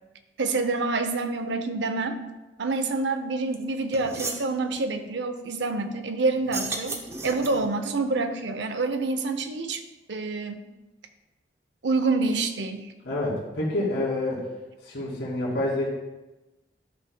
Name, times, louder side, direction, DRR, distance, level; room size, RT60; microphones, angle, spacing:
voice 1, 0.4-2.2 2.6-7.0 7.2-9.8 10.1-10.6 11.8-12.9, right 3 dB, 90° right, 8 dB, 0.6 m, -27 dB
sound 1, 3.5-3.6 3.9-4.5 6.4-7.7, right 3 dB, 15° right, 0.6 m, -34 dB
voice 2, 13.0-14.4 14.8-15.9, left 1 dB, 80° left, -4 dB, 2.4 m, -27 dB
11.5 x 5.6 x 2.2 m, 1.1 s
head